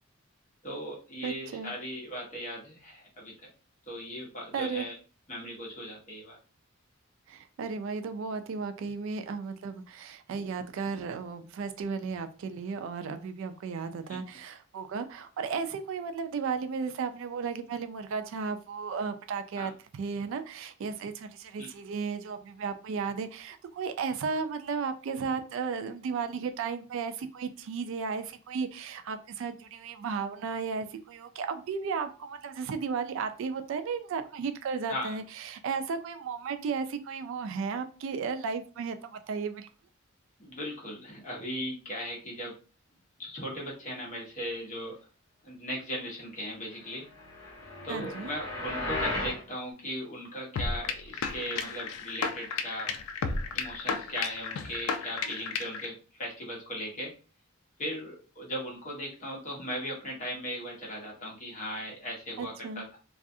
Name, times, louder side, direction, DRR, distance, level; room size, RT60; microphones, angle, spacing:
voice 1, 0.6-3.5 3.9-5.0 5.3-6.4 14.1-14.2 19.6-19.7 21.6-21.7 34.9-35.2 40.4-42.5 43.2-45.0 45.4-47.0 47.8-52.9 53.2-57.1 57.8-63.0, equal, 35° left, -2 dB, 0.9 m, -38 dB
voice 2, 1.2-1.7 4.5-4.9 7.3-39.7 47.9-48.3 55.2-55.3 62.4-62.9, right 5 dB, 65° right, 9 dB, 0.3 m, -34 dB
sound 1, 47.1-49.4, left 2 dB, 15° left, 1.1 m, -34 dB
sound 2, 50.6-55.9, left 5 dB, 75° left, 0.3 m, -33 dB
2.4 x 2.3 x 2.6 m, 0.36 s
head